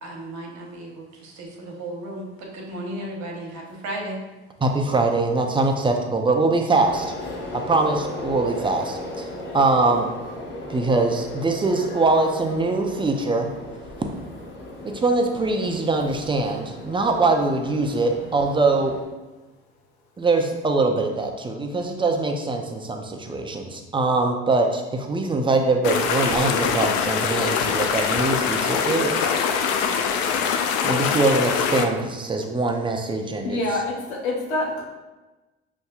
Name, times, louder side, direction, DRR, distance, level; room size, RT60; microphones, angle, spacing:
voice 1, 0.0-4.2, right 1 dB, 60° right, 0 dB, 1.0 m, -34 dB
voice 2, 4.6-7.1 7.5-10.1 10.7-13.5 14.8-19.0 20.2-29.4 30.8-33.6, right 3 dB, 15° right, 4 dB, 0.5 m, -23 dB
sound 1, 6.7-19.0, left 2 dB, 35° left, 1.2 m, -36 dB
sound 2, 25.8-31.8, left 6 dB, 65° left, 0.5 m, -23 dB
voice 3, 33.4-34.8, left 2 dB, 90° left, -1 dB, 0.8 m, -26 dB
5.3 x 2.7 x 2.3 m, 1.1 s
hypercardioid pair, 70°, 32 cm